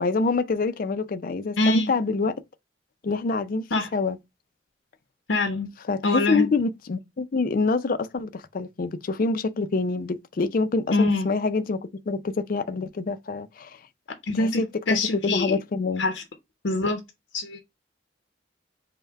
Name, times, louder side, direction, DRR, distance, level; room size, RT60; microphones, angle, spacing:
voice 1, 0.0-2.3 3.0-3.6 3.9-4.2 5.9-11.8 12.1-13.8 14.4-16.0, left 3 dB, 50° left, 0.4 m, -26 dB
voice 2, 1.6-1.9 3.7-3.9 5.3-5.7 6.0-6.5 10.9-11.3 14.2-15.6 16.0-16.2 16.6-17.0 17.3-17.6, left 2 dB, 90° left, 0.8 m, -24 dB
5.5 x 2.1 x 4.4 m
head